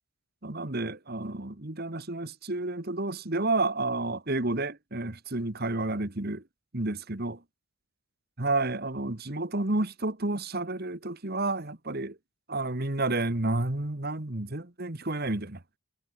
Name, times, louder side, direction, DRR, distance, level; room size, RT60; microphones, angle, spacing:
voice 1, 0.4-6.4 6.7-7.4 8.4-12.2 12.5-15.6, right 2 dB, 45° right, 1.7 m, -30 dB
head